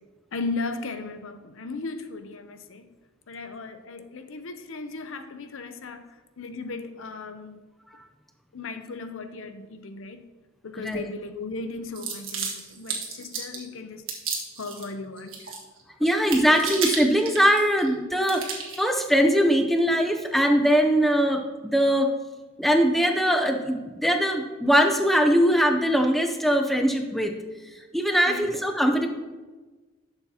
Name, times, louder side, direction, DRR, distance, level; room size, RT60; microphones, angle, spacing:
voice 1, 0.3-2.9 3.3-6.1 6.4-7.6 8.5-10.3 10.6-14.0 14.6-15.5 28.3-28.5, left 3 dB, 65° left, 0.6 m, -36 dB
sound 1, 11.9-13.7 14.1-14.9 15.2-15.8 16.1-17.9 18.2-18.8, right 5 dB, 65° right, 1.5 m, -32 dB
voice 2, 16.0-22.1 22.6-27.3 27.9-29.1, equal, ahead, 0.5 m, -21 dB
11.0 x 6.9 x 2.8 m
head